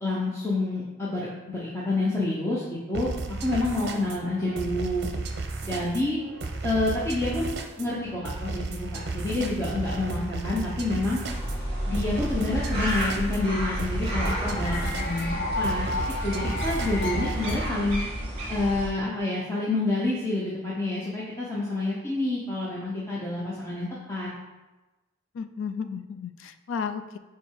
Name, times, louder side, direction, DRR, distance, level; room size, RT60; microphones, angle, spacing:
voice 1, 0.0-3.1 3.4-5.1 5.6-6.2 6.6-11.2 11.9-15.9 16.2-18.0 18.5-24.3, left 2 dB, 15° left, -7 dB, 0.8 m, -28 dB
sound 1, 2.9-17.7, right 3 dB, 55° right, 0.7 m, -34 dB
sound 2, 11.2-18.9, equal, 30° right, 1.6 m, -31 dB
sound 3, 14.2-18.4, left 2 dB, 45° left, 1.0 m, -33 dB
voice 2, 25.3-27.2, left 6 dB, 75° left, 10 dB, 0.4 m, -33 dB
5.2 x 4.6 x 4.7 m, 1.1 s
head